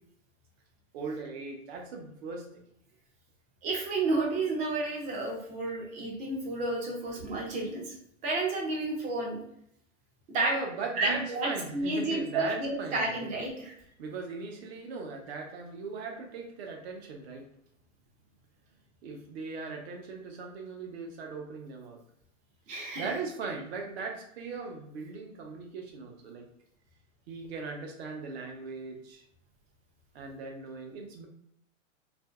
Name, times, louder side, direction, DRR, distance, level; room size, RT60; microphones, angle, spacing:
voice 1, 0.9-2.5 7.2-7.4 10.4-13.4 14.0-17.5 19.0-22.0 23.0-26.4 27.3-29.2 30.1-31.3, right 4 dB, 50° right, 2 dB, 0.9 m, -39 dB
voice 2, 3.6-7.9 8.2-9.4 10.3-10.5 11.0-13.7 22.7-23.1, right 2 dB, 20° right, -1 dB, 0.5 m, -31 dB
2.6 x 2.6 x 2.4 m, 0.72 s
hypercardioid pair, 140°, 40 cm